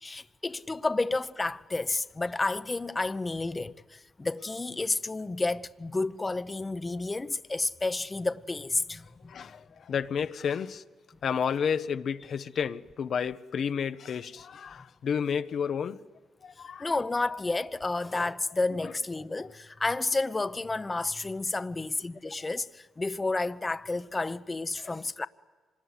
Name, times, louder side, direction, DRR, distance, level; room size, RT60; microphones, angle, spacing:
voice 1, 0.0-9.3 16.8-25.3, left 3 dB, 20° left, 0.8 m, -31 dB
voice 2, 9.3-10.8 11.2-16.0 16.4-16.9 24.8-24.9, left 7 dB, 60° left, 0.9 m, -31 dB
25.5 x 20.5 x 9.7 m
cardioid pair, 90°, 0 cm